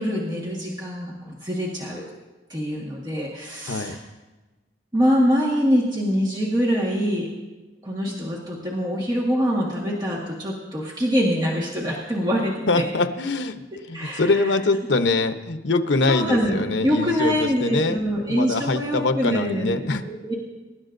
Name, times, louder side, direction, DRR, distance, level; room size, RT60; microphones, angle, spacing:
voice 1, 0.0-2.1 2.5-4.0 4.9-7.3 7.8-12.9 13.9-14.5 16.1-20.3, equal, 25° right, -3 dB, 1.5 m, -24 dB
voice 2, 12.7-13.6 13.9-18.0 18.3-20.0, left 3 dB, 75° left, 8 dB, 0.8 m, -23 dB
23.5 x 12.0 x 2.6 m, 1.2 s
head